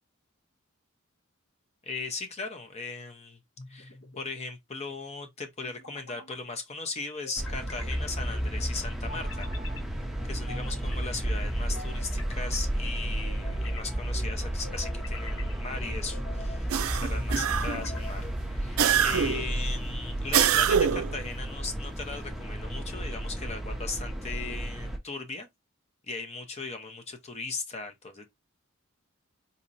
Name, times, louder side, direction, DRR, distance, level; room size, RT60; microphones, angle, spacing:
voice 1, 1.8-3.4 3.7-9.5 10.2-25.5 26.1-28.3, left 4 dB, 30° left, 0.7 m, -38 dB
sound 1, 3.6-4.2 5.6-6.4 7.2-8.0 9.1-9.8 10.5-11.1 11.7-12.6 13.2-13.9 14.6-15.5 16.1-16.6 17.4-18.2, left 3 dB, 65° left, 0.9 m, -46 dB
sound 2, 7.4-25.0, right 1 dB, ahead, 0.6 m, -32 dB
sound 3, 16.7-17.9 18.8-19.5 20.3-21.2, right 8 dB, 85° right, 0.4 m, -24 dB
4.0 x 2.9 x 2.5 m
head